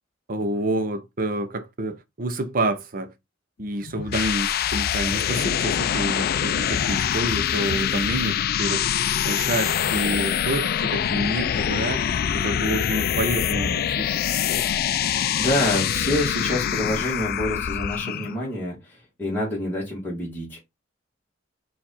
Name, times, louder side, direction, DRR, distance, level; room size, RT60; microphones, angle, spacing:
voice 1, 0.3-3.1 3.6-8.9 9.2-14.2, right 1 dB, 45° right, 0.6 m, -28 dB
sound 1, 3.8-18.4, left 9 dB, 55° left, 0.3 m, -24 dB
voice 2, 15.0-20.6, left 1 dB, 10° left, 1.6 m, -27 dB
4.6 x 2.5 x 4.1 m
head